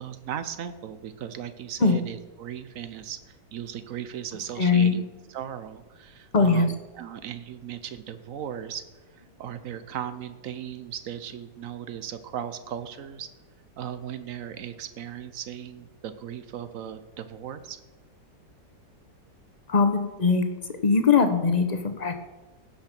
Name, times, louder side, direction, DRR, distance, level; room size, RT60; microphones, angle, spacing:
voice 1, 0.0-5.0 5.3-8.9 9.1-13.3 13.8-17.8, right 9 dB, 60° right, 12 dB, 0.9 m, -37 dB
voice 2, 4.6-5.0 6.3-6.7 19.7-22.2, left 4 dB, 40° left, 8 dB, 0.6 m, -21 dB
16.0 x 5.8 x 5.9 m, 1.1 s
omnidirectional pair, 1.9 m